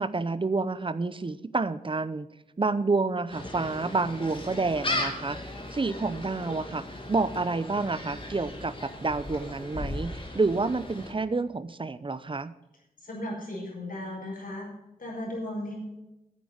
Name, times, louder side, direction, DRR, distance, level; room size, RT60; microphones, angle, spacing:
voice 1, 0.0-2.3 2.6-12.5, right 3 dB, 35° right, 15 dB, 0.6 m, -29 dB
Gull seagull, 3.3-11.1, left 1 dB, 35° left, 2.3 m, -37 dB
voice 2, 13.0-14.7 15.0-15.7, left 1 dB, 70° left, -2 dB, 5.2 m, -36 dB
9.4 x 8.5 x 7.9 m, 0.96 s
wide cardioid pair, 80°, 15 cm